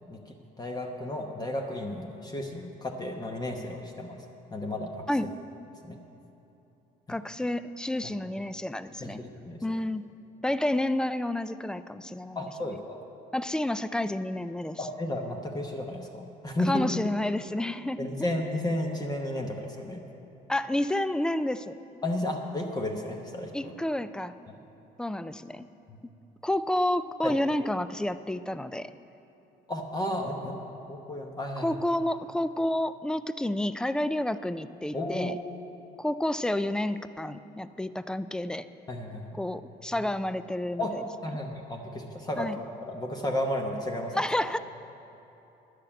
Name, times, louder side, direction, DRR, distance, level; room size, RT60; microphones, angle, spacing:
voice 1, 0.1-4.2 4.5-5.0 5.8-6.0 8.0-8.1 9.0-9.7 12.3-13.0 14.8-16.9 18.0-20.0 22.0-23.7 25.9-26.0 27.2-27.4 29.7-30.6 30.9-31.8 34.9-35.4 38.9-39.4 39.9-40.1 40.8-42.5 42.8-44.2, left 1 dB, 25° left, 1 dB, 1.0 m, -33 dB
voice 2, 7.1-9.2 9.6-10.1 10.4-12.5 13.3-14.8 16.7-18.3 20.5-21.7 23.5-24.3 25.0-25.7 26.4-28.9 31.6-35.4 36.0-38.7 39.4-41.0 42.4-42.6 44.2-44.6, left 1 dB, 5° left, 13 dB, 0.3 m, -30 dB
10.5 x 6.6 x 8.7 m, 3.0 s
cardioid pair, 110°, 17 cm